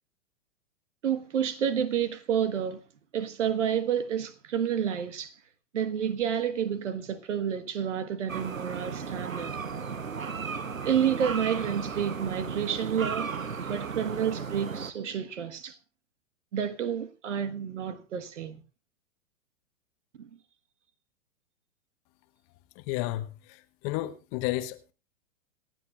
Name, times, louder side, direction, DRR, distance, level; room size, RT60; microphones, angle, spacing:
voice 1, 1.0-2.8 3.1-5.3 5.7-9.6 10.8-13.3 13.7-15.8 16.5-18.6 20.2-20.3, right 8 dB, 65° right, 1.5 m, -29 dB
sound 1, 8.3-14.9, right 5 dB, 90° right, 0.9 m, -35 dB
voice 2, 22.9-23.2 23.8-24.9, left 16 dB, 30° left, 1.1 m, -31 dB
27.5 x 9.3 x 2.4 m
figure-of-eight pair, 110°, 39 cm